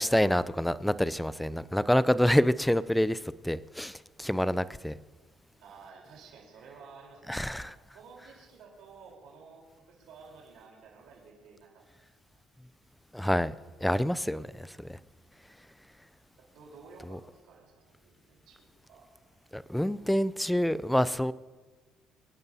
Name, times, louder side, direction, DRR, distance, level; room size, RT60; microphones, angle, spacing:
voice 1, 0.0-4.9 7.3-7.7 13.1-13.5 13.8-15.0 17.1-17.2 19.5-21.3, equal, 5° left, 0.4 m, -27 dB
voice 2, 5.6-7.6 7.9-11.8 16.5-19.0, right 5 dB, 75° right, 3.7 m, -52 dB
25.5 x 11.0 x 2.7 m
cardioid pair, 115°, 0 cm